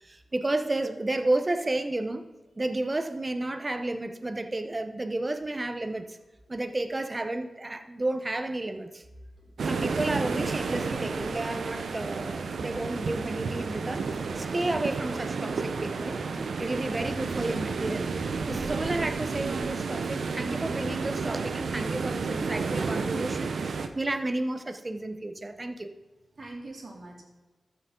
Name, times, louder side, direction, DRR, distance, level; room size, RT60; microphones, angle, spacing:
voice 1, 0.0-2.3 2.6-6.2 6.5-9.0 9.6-16.2 16.6-25.9, right 2 dB, 30° right, 8 dB, 0.9 m, -32 dB
voice 2, 9.2-9.6 26.3-27.2, right 2 dB, 55° right, 0 dB, 2.5 m, -45 dB
sound 1, 9.6-23.9, right 4 dB, 80° right, 0.8 m, -31 dB
13.5 x 6.8 x 3.8 m, 1.2 s
cardioid pair, 60°, 0 cm